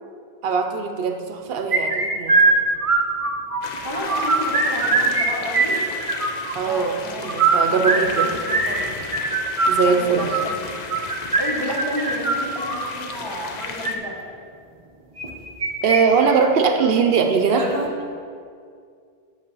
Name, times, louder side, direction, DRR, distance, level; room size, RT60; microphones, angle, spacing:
voice 1, 0.4-2.6 6.5-8.3 9.7-10.3 15.8-17.7, right 5 dB, 70° right, 4 dB, 0.8 m, -21 dB
sound 1, 1.7-3.6 3.9-5.2 5.5-6.5 7.2-12.9 13.6-13.9 15.2-16.0 16.3-16.4 16.8-16.9 17.5-17.9, right 3 dB, 40° right, 0.7 m, -21 dB
sound 2, 3.6-14.0, left 4 dB, 50° left, 0.6 m, -34 dB
voice 2, 3.8-5.8 6.6-8.8 9.8-10.6 11.4-14.2, equal, 25° left, -4 dB, 1.1 m, -32 dB
6.7 x 5.5 x 5.3 m, 2.2 s
omnidirectional pair, 1.0 m